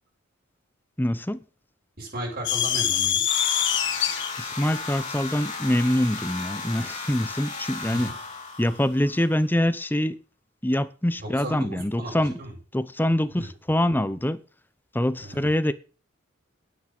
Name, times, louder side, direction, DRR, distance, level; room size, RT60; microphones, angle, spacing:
voice 1, 1.0-1.4 4.4-8.1 8.6-10.2 10.6-12.4 12.7-14.4 14.9-15.7, left 1 dB, 10° left, 0.8 m, -24 dB
voice 2, 2.0-3.2 7.9-8.1 11.2-12.5 13.4-13.5 15.2-15.5, right 1 dB, 45° right, 7.9 m, -35 dB
sound 1, 2.4-7.0, left 10 dB, 60° left, 1.6 m, -26 dB
sound 2, 3.3-9.4, left 3 dB, 35° left, 3.4 m, -35 dB
9.5 x 9.0 x 7.7 m
head